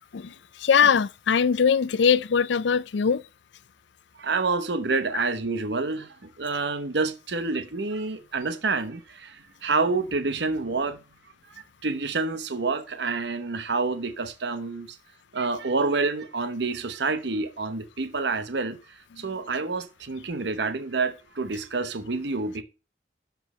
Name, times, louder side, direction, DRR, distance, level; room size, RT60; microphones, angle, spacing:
voice 1, 0.6-3.2, left 6 dB, 70° left, 0.4 m, -21 dB
voice 2, 4.2-11.0 11.8-15.0 15.3-22.6, right 3 dB, 65° right, 0.9 m, -28 dB
12.5 x 5.9 x 3.1 m
head